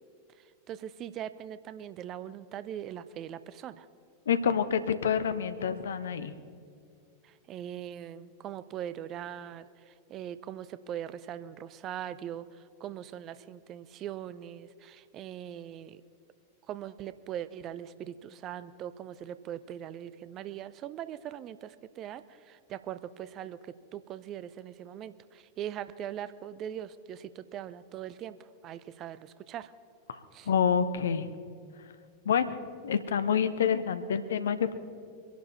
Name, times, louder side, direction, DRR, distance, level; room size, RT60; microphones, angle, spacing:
voice 1, 0.4-3.9 7.2-16.0 16.7-29.7 30.3-30.5, right 10 dB, 35° right, 15 dB, 0.5 m, -41 dB
voice 2, 4.3-6.3 30.1-31.3 32.2-32.6 32.8-34.8, left 7 dB, 65° left, 13 dB, 0.8 m, -28 dB
23.5 x 11.5 x 4.2 m, 2.4 s
figure-of-eight pair, 90°, 0 cm